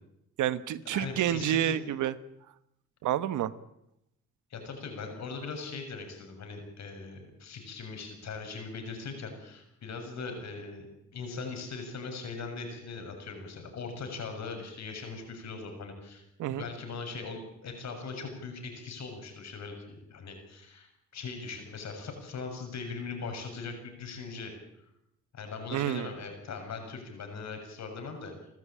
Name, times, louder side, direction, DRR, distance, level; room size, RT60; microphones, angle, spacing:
voice 1, 0.4-2.1 3.0-3.5 16.4-16.7 25.7-26.1, right 11 dB, 80° right, 15 dB, 1.2 m, -29 dB
voice 2, 0.9-1.8 4.5-10.9 11.1-16.2 16.5-24.5 25.3-28.3, left 4 dB, 65° left, 4 dB, 7.0 m, -40 dB
27.5 x 13.5 x 8.8 m, 0.83 s
cardioid pair, 90°, 30 cm